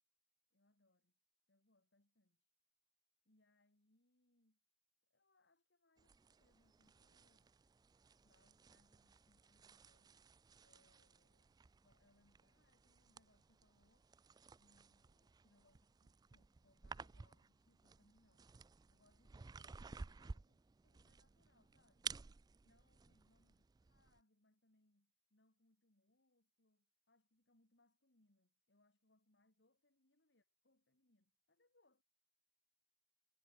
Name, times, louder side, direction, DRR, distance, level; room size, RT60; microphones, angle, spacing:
voice 1, 0.5-1.2 1.5-2.5 3.2-4.6 5.1-7.5 8.2-10.2 10.6-14.1 14.5-18.5 18.9-22.2 22.6-32.0, left 2 dB, 70° left, 2.9 m, -78 dB
sound 1, 6.0-24.2, right 5 dB, 20° right, 0.3 m, -56 dB
head